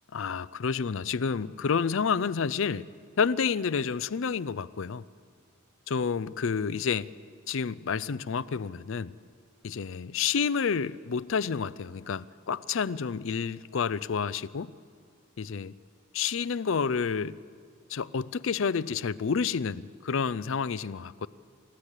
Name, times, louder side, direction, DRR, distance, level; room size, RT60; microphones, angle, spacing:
voice 1, 0.1-2.9 3.2-5.0 5.9-7.1 7.5-9.2 9.6-14.7 15.4-15.7 16.1-17.4 17.9-21.3, left 6 dB, 65° left, 0.5 m, -29 dB
28.0 x 15.0 x 8.2 m
head